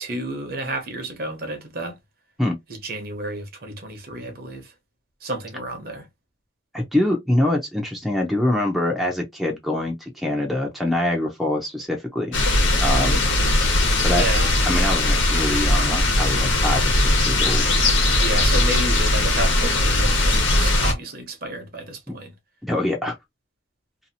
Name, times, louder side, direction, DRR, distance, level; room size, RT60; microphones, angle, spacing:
voice 1, 0.0-2.0 2.8-4.7 5.2-6.0 14.1-14.5 18.2-22.3, right 1 dB, 50° right, 0.9 m, -31 dB
voice 2, 6.7-12.4 12.8-13.3 14.0-14.3 14.6-17.7 22.1-22.2 22.6-23.2, left 1 dB, ahead, 0.6 m, -24 dB
sound 1, 12.3-20.9, left 1 dB, 85° left, 1.2 m, -19 dB
2.8 x 2.5 x 2.7 m
head